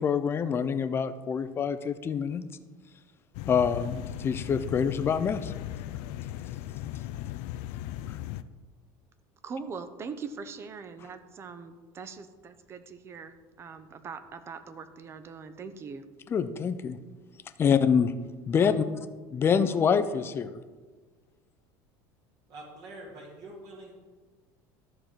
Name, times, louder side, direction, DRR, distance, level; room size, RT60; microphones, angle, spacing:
voice 1, 0.0-2.4 3.5-5.5 16.3-17.0 17.6-18.1 18.5-18.7 19.3-20.6, left 7 dB, 25° left, 11 dB, 0.6 m, -26 dB
sound 1, 3.3-8.4, left 13 dB, 75° left, 0.5 m, -37 dB
voice 2, 9.4-16.0, right 5 dB, 30° right, 11 dB, 0.8 m, -41 dB
voice 3, 22.5-23.9, right 2 dB, 50° right, -2 dB, 2.1 m, -45 dB
13.0 x 4.5 x 6.6 m, 1.4 s
cardioid pair, 140°, 9 cm